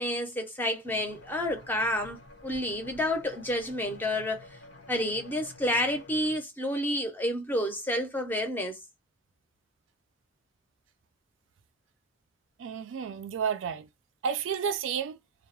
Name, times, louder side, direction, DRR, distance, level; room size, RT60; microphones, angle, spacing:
voice 1, 0.0-2.2 2.4-4.4 4.9-8.8, left 1 dB, 10° left, 0.5 m, -29 dB
sound 1, 0.8-6.4, left 2 dB, 90° left, 0.9 m, -50 dB
voice 2, 12.6-13.9 14.2-15.2, right 7 dB, 75° right, 0.3 m, -31 dB
2.2 x 2.0 x 3.0 m
head